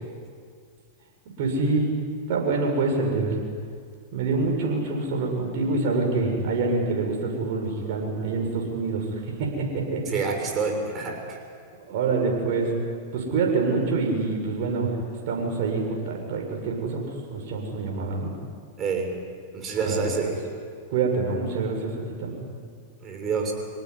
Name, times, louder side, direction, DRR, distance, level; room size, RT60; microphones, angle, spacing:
voice 1, 1.4-1.9 2.3-3.4 4.1-10.2 11.9-12.7 13.1-14.9 15.3-18.3 19.8-20.3 20.9-22.4, right 3 dB, 60° right, 0 dB, 7.1 m, -26 dB
voice 2, 10.1-11.4 18.8-19.2 19.5-20.4 23.0-23.5, right 5 dB, 30° right, 2 dB, 6.4 m, -27 dB
26.0 x 18.5 x 9.9 m, 2.1 s
hypercardioid pair, 120°, 0 cm